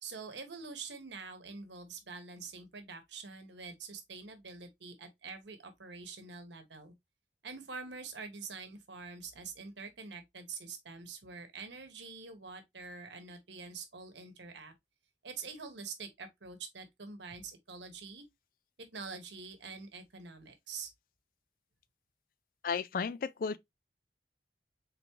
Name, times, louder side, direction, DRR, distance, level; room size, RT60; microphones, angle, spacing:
voice 1, 0.0-6.9 7.4-14.7 15.2-18.2 18.8-20.9, right 4 dB, 80° right, 1.1 m, -46 dB
voice 2, 22.6-23.6, left 5 dB, 50° left, 0.3 m, -33 dB
3.7 x 3.5 x 3.0 m
head